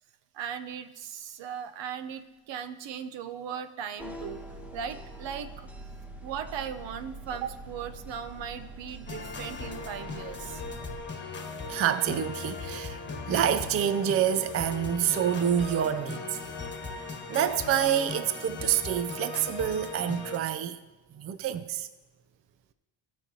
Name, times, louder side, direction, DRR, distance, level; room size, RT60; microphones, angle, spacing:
voice 1, 0.3-4.5 4.7-5.7 6.2-10.6, right 8 dB, 70° right, 0.8 m, -38 dB
sound 1, 4.0-11.0, right 1 dB, 5° right, 0.9 m, -44 dB
sound 2, 9.1-20.4, left 4 dB, 25° left, 1.5 m, -38 dB
voice 2, 11.7-13.0 13.3-16.4 17.3-20.8 21.1-21.9, right 9 dB, 30° right, 0.4 m, -27 dB
16.5 x 5.9 x 2.8 m
cardioid pair, 100°, 47 cm